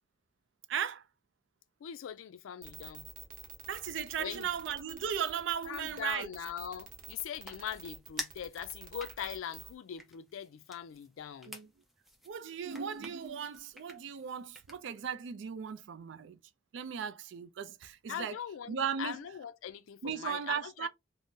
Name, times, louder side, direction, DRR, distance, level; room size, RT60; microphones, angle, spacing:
voice 1, 0.7-1.0 3.7-6.3 11.5-11.7 12.3-16.4 16.7-18.4 18.7-19.2 20.0-20.9, right 7 dB, 65° right, 0.3 m, -36 dB
voice 2, 1.8-3.1 4.2-4.5 5.7-11.5 18.1-20.9, left 8 dB, 90° left, 0.3 m, -41 dB
sound 1, 2.6-9.7, right 7 dB, 45° right, 0.8 m, -48 dB
sound 2, 6.4-15.1, equal, ahead, 0.5 m, -50 dB
2.6 x 2.0 x 3.5 m
head